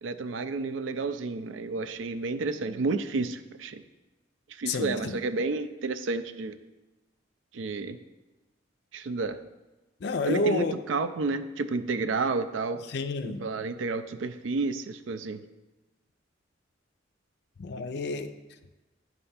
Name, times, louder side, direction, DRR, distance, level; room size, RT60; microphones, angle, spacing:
voice 1, 0.0-3.8 4.5-6.6 7.5-8.0 8.9-9.4 10.3-12.8 13.2-15.5, right 3 dB, 80° right, 11 dB, 0.4 m, -31 dB
voice 2, 4.7-5.2 10.0-10.7 12.9-13.5 17.6-18.3, left 3 dB, 60° left, 8 dB, 0.5 m, -29 dB
9.0 x 3.4 x 5.6 m, 1.1 s
head